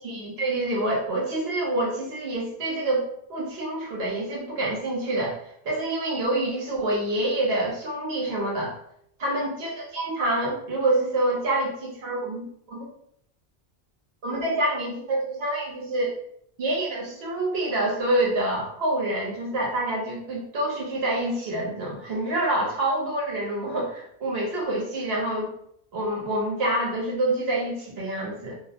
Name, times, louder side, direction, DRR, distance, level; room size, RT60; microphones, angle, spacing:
voice 1, 0.0-5.4 5.6-8.8 9.2-12.9 14.2-16.1 16.6-25.5 25.9-28.5, right 1 dB, 75° right, -3 dB, 1.1 m, -27 dB
2.6 x 2.1 x 2.8 m, 0.71 s
omnidirectional pair, 1.1 m